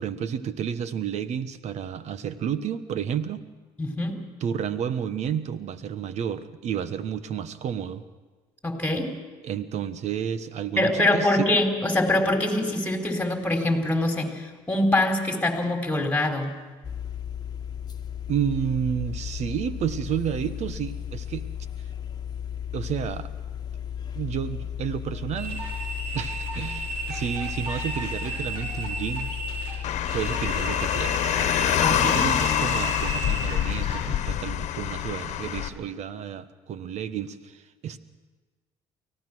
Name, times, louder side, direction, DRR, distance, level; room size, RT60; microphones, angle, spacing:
voice 1, 0.0-3.5 4.4-8.0 9.4-11.5 18.3-21.5 22.7-23.3 24.1-25.6 26.1-29.3 30.1-31.5 31.8-38.0, right 8 dB, 60° right, 13 dB, 1.2 m, -31 dB
voice 2, 3.8-4.1 8.6-9.1 10.8-16.5 31.8-32.2, left 1 dB, 10° left, 4 dB, 4.1 m, -24 dB
sound 1, 16.8-33.9, left 9 dB, 30° left, 1.5 m, -35 dB
sound 2, 25.4-34.0, right 2 dB, 85° right, 4.9 m, -34 dB
Car, 29.8-35.7, left 11 dB, 60° left, 1.3 m, -26 dB
24.5 x 17.0 x 6.3 m, 1.3 s
supercardioid pair, 75°, 13 cm